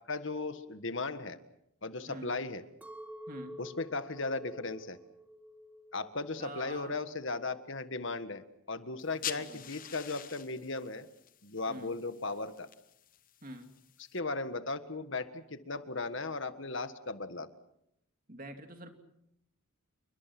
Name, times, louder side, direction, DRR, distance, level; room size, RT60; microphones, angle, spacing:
voice 1, 0.0-1.4 1.8-2.6 3.6-5.0 5.9-8.4 8.7-11.1 11.4-12.7 14.1-17.5, left 3 dB, 55° left, 11 dB, 1.6 m, -37 dB
Chink clink, 2.8-7.1 7.5-8.1, equal, 5° right, 1.4 m, -50 dB
voice 2, 3.3-3.6 6.4-6.9 9.2-9.6 11.7-12.0 13.4-13.7 18.3-18.9, right 1 dB, 40° right, 6 dB, 2.7 m, -46 dB
sound 1, 9.0-14.2, left 10 dB, 40° left, 0.9 m, -46 dB
29.5 x 23.5 x 6.1 m, 0.77 s
head